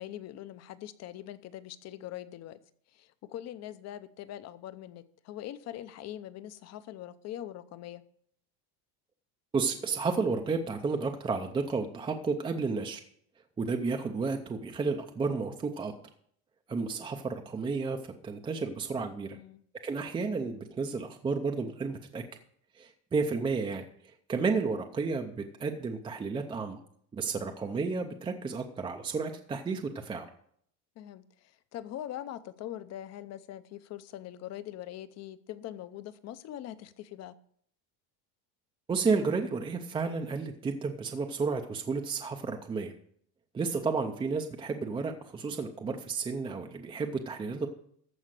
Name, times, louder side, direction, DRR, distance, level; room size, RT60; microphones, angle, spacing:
voice 1, 0.0-2.6 2.9-8.0 19.3-19.6 31.0-37.3, left 12 dB, 35° left, 14 dB, 0.6 m, -42 dB
voice 2, 9.5-13.0 13.6-15.9 16.7-19.4 19.8-22.2 22.7-26.8 27.1-30.3 38.9-42.9 43.5-47.7, right 4 dB, 10° right, 4 dB, 0.5 m, -32 dB
14.0 x 5.0 x 7.5 m, 0.64 s
cardioid pair, 160°, 45 cm